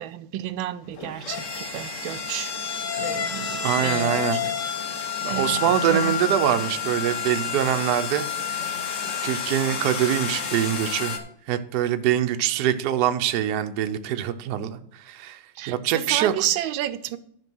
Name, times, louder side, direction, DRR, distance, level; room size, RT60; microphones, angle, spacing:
voice 1, 0.0-2.5 3.0-4.4 5.3-6.1 15.6-17.2, right 12 dB, 85° right, 1.4 m, -31 dB
sound 1, 0.9-11.2, left 7 dB, 45° left, 1.2 m, -29 dB
voice 2, 3.6-4.5 5.2-8.8 9.2-11.1 11.5-16.3, right 11 dB, 65° right, 1.1 m, -24 dB
11.0 x 5.2 x 6.1 m
omnidirectional pair, 2.1 m